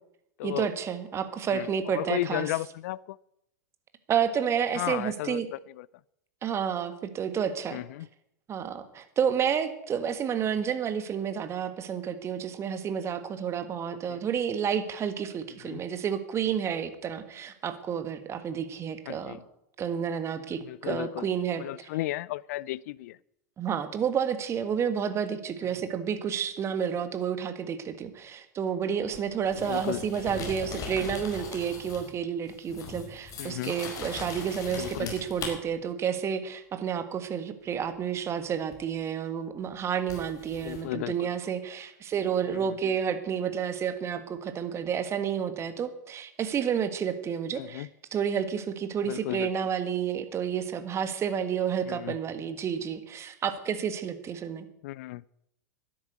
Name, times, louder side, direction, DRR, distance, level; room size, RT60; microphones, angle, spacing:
voice 1, 0.4-2.5 4.1-5.5 6.4-7.8 8.5-19.4 19.8-21.9 23.6-54.7, right 8 dB, 30° right, 10 dB, 1.8 m, -30 dB
voice 2, 1.5-3.2 4.8-5.9 7.7-8.1 14.1-14.2 15.6-15.8 19.1-19.4 20.7-21.3 21.6-23.2 29.7-30.0 33.4-33.7 34.8-35.1 40.6-41.3 42.5-42.6 47.6-47.9 49.1-49.5 51.9-52.2 54.8-55.2, left 17 dB, 60° left, 23 dB, 0.4 m, -34 dB
sound 1, 29.1-32.2 32.5-35.5 38.7-38.8 40.1-40.8, left 4 dB, 35° left, 5.0 m, -39 dB
12.5 x 10.5 x 8.2 m, 0.79 s
hypercardioid pair, 95°, 10 cm